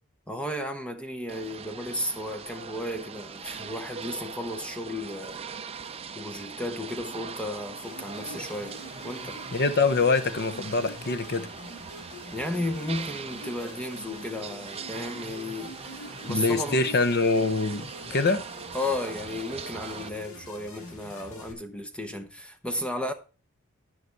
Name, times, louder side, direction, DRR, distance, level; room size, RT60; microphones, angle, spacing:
voice 1, 0.3-9.4 12.3-16.9 18.7-23.1, left 1 dB, 5° left, 0.8 m, -34 dB
sound 1, 1.3-20.1, right 5 dB, 30° right, 0.6 m, -41 dB
sound 2, 7.8-21.5, left 1 dB, 70° left, 2.1 m, -45 dB
voice 2, 9.5-11.5 16.3-18.4, left 3 dB, 50° left, 0.8 m, -24 dB
11.0 x 5.8 x 4.6 m
head